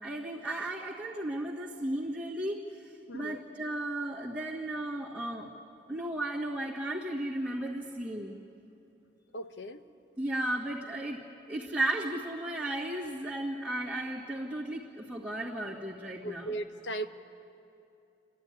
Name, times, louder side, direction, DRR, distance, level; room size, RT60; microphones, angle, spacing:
voice 1, 0.0-5.5 5.9-8.4 10.2-11.2 11.5-16.6, right 1 dB, 5° right, -7 dB, 1.7 m, -35 dB
voice 2, 3.1-3.4 9.3-9.8 16.2-17.1, right 1 dB, 85° left, 9 dB, 1.0 m, -37 dB
29.0 x 12.5 x 9.7 m, 2.6 s
head